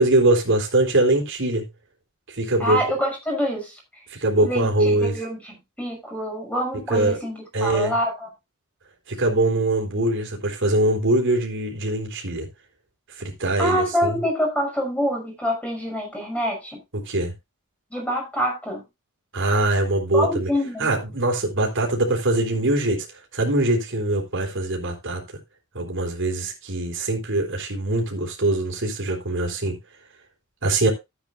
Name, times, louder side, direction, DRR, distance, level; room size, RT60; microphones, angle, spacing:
voice 1, 0.0-1.6 2.3-2.8 4.1-5.1 6.9-7.2 7.5-7.9 9.1-12.5 13.2-14.2 17.1-17.3 19.3-20.5 20.8-23.1 23.3-25.2 25.7-29.8 30.6-30.9, right 2 dB, 60° right, 3.9 m, -22 dB
voice 2, 2.6-3.8 4.4-8.3 13.6-16.8 17.9-18.8 20.1-20.9, equal, 5° left, 6.0 m, -26 dB
13.5 x 9.2 x 2.5 m
head